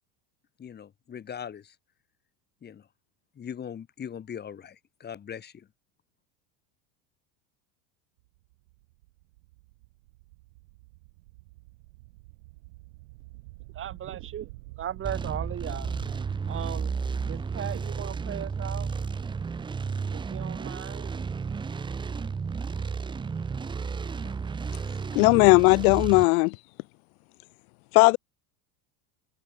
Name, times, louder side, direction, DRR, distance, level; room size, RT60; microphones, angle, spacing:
voice 1, 0.6-1.8 2.6-2.9 3.3-5.7, left 8 dB, 20° left, 2.8 m, -40 dB
sound 1, 8.2-21.9, right 23 dB, 70° right, 5.2 m, -48 dB
voice 2, 13.7-14.5 14.8-15.9 16.5-16.9 17.3-18.9 20.1-21.2, right 10 dB, 25° right, 3.5 m, -37 dB
sound 2, 15.0-26.2, right 5 dB, 10° right, 0.9 m, -33 dB
voice 3, 25.1-26.6 27.9-28.2, left 27 dB, 65° left, 0.6 m, -18 dB
supercardioid pair, 160°, 48 cm